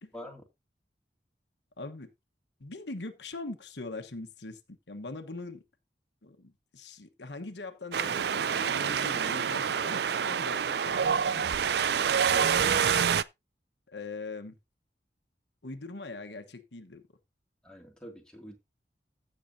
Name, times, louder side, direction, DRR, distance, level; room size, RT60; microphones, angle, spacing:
voice 1, 1.8-2.1 2.6-5.6 6.2-11.5 13.9-14.6 15.6-17.0, left 3 dB, 80° left, 1.2 m, -42 dB
Wind, 7.9-13.2, right 7 dB, 65° right, 0.4 m, -27 dB
voice 2, 12.1-13.0 17.6-18.6, equal, 5° left, 2.3 m, -45 dB
15.5 x 6.6 x 2.7 m
head